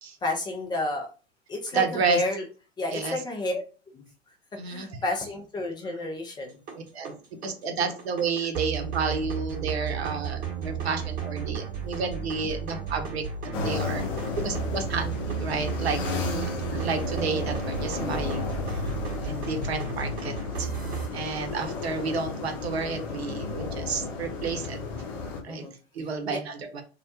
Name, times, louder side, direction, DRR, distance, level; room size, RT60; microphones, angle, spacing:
voice 1, 0.2-1.1 1.5-2.4 2.8-3.6 3.9-4.0 4.7-6.6 16.2-16.4 25.5-25.7 26.3-26.4, left 2 dB, 15° left, 1 dB, 0.4 m, -31 dB
voice 2, 1.7-2.2 2.9-3.2 4.6-4.9 6.9-7.1 7.4-13.2 13.6-14.0 14.4-16.0 16.7-18.9 19.2-20.7 21.1-24.8 25.4-25.6 25.9-26.8, right 4 dB, 75° right, 5 dB, 0.7 m, -31 dB
sound 1, 6.4-21.1, right 6 dB, 30° right, 1.0 m, -34 dB
sound 2, 13.5-25.4, left 4 dB, 40° left, 0.8 m, -33 dB
2.2 x 2.1 x 2.8 m, 0.35 s
figure-of-eight pair, 95°, 32 cm